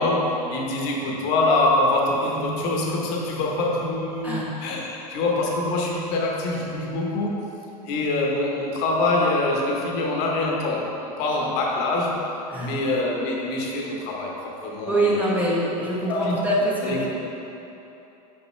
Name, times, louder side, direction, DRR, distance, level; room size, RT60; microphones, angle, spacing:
voice 1, 0.0-7.4 7.9-12.2 12.6-15.4 16.1-16.4 16.8-17.1, left 2 dB, 55° left, -1 dB, 1.1 m, -24 dB
voice 2, 14.9-17.1, right 1 dB, 10° right, -6 dB, 1.1 m, -24 dB
5.5 x 5.5 x 3.3 m, 2.9 s
hypercardioid pair, 110°, 20 cm